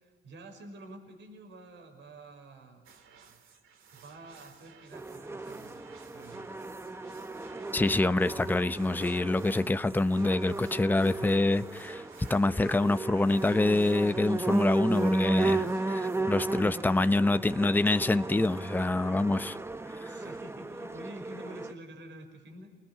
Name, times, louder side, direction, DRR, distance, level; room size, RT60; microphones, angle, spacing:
voice 1, 0.0-2.9 3.3-3.4 3.9-6.5 15.6-16.3 16.7-17.2 18.8-18.9 20.0-22.8, right 1 dB, 65° right, 5.5 m, -49 dB
sound 1, 2.8-16.2, right 6 dB, 90° right, 3.1 m, -57 dB
sound 2, 4.9-21.7, right 2 dB, 15° right, 1.1 m, -35 dB
voice 2, 7.7-12.0 12.3-15.6 16.3-19.6 20.0-20.2, left 2 dB, 10° left, 0.8 m, -26 dB
27.5 x 20.0 x 9.8 m
cardioid pair, 90°, 20 cm